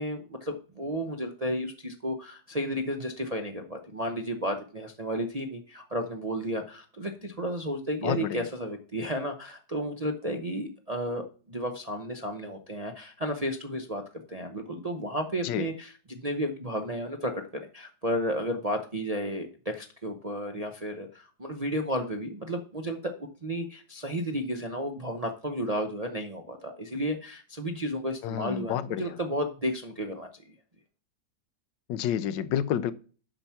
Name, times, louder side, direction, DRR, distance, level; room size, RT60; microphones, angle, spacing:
voice 1, 0.0-14.0 14.3-17.3 17.7-23.1 23.4-30.3, equal, 40° right, 0.5 m, -32 dB
voice 2, 8.0-8.4 15.4-15.7 28.2-29.1 31.9-32.9, left 10 dB, 80° left, 1.3 m, -29 dB
7.9 x 5.8 x 5.8 m
omnidirectional pair, 1.9 m